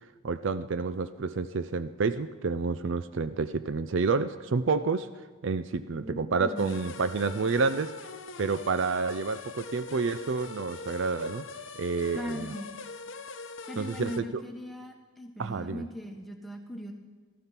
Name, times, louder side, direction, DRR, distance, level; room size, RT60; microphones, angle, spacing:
voice 1, 0.2-5.1 5.4-7.9 8.4-11.5 11.8-12.5 13.8-14.4 15.4-15.9, right 4 dB, 60° right, 12 dB, 0.4 m, -29 dB
voice 2, 6.0-6.8 12.1-12.7 13.7-16.9, equal, ahead, 2 dB, 1.4 m, -39 dB
sound 1, 6.6-14.2, left 4 dB, 60° left, 0.9 m, -42 dB
14.5 x 13.5 x 5.9 m, 1.4 s
head